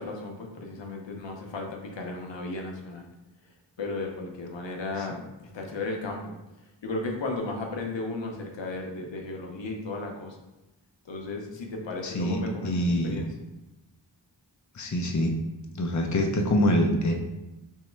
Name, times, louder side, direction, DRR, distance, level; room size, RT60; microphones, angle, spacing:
voice 1, 0.0-3.1 3.8-6.3 6.8-10.4 11.0-13.3, left 3 dB, 80° left, 1 dB, 0.7 m, -35 dB
voice 2, 12.0-13.2 14.7-15.3 15.7-17.1, left 1 dB, 40° left, 2 dB, 0.6 m, -25 dB
3.1 x 2.7 x 4.4 m, 1.0 s
wide cardioid pair, 50°, 44 cm